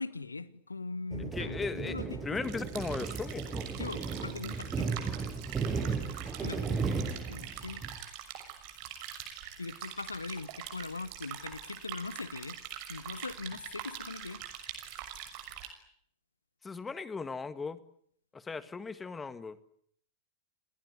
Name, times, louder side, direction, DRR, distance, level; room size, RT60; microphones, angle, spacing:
voice 1, 0.0-2.2 3.8-4.9 6.4-6.8 7.3-7.8 9.6-12.6 12.9-14.4, left 3 dB, 80° left, 18 dB, 1.2 m, -40 dB
sound 1, 1.1-8.0, right 5 dB, 20° right, 6.9 m, -35 dB
voice 2, 1.3-3.7 16.6-17.8 18.3-19.6, left 4 dB, 15° left, 14 dB, 1.8 m, -38 dB
sound 2, 2.4-15.7, right 10 dB, 45° right, 6.2 m, -44 dB
29.5 x 20.0 x 9.7 m, 0.67 s
figure-of-eight pair, 90°, 0 cm